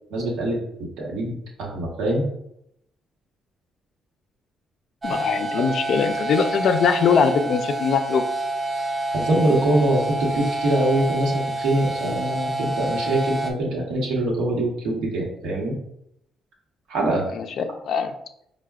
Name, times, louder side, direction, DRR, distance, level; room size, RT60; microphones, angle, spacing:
voice 1, 0.1-0.6 1.0-2.2 5.5-5.6 9.1-15.8 16.9-17.2, right 1 dB, 90° right, -2 dB, 0.9 m, -23 dB
voice 2, 5.0-8.2 17.4-18.1, left 6 dB, 65° left, 7 dB, 0.3 m, -22 dB
sound 1, 5.0-13.5, right 2 dB, 25° right, 0.5 m, -28 dB
4.5 x 2.1 x 2.3 m, 0.78 s
cardioid pair, 90°, 0 cm